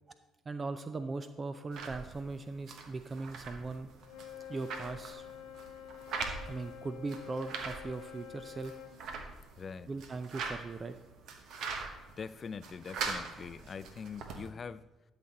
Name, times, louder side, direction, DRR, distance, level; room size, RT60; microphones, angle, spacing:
voice 1, 0.5-3.9 4.5-5.3 6.4-8.8 9.9-11.0, right 3 dB, 35° right, 10 dB, 0.5 m, -39 dB
sound 1, 1.7-14.5, right 4 dB, 65° right, 1.1 m, -43 dB
Wind instrument woodwind instrument, 4.0-9.0, left 10 dB, 75° left, 1.1 m, -48 dB
voice 2, 9.3-9.9 12.2-14.9, left 6 dB, 45° left, 17 dB, 0.4 m, -43 dB
12.0 x 6.0 x 4.1 m, 1.2 s
hypercardioid pair, 55°, 0 cm